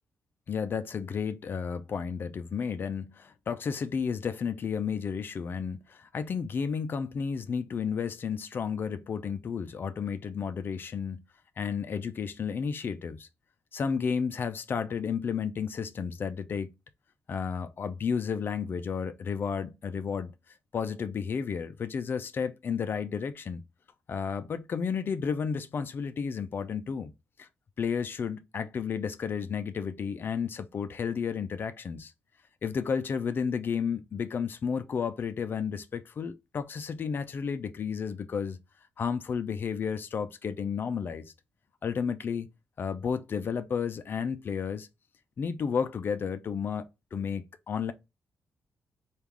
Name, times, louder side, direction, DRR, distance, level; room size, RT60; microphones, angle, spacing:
voice 1, 0.5-11.2 11.6-13.3 13.7-16.7 17.3-20.3 20.7-23.6 24.1-27.1 27.4-27.5 27.8-32.1 32.6-38.6 39.0-41.3 41.8-42.5 42.8-44.9 45.4-47.9, left 6 dB, 50° left, 0.4 m, -32 dB
3.5 x 2.4 x 2.9 m
cardioid pair, 100°, 5 cm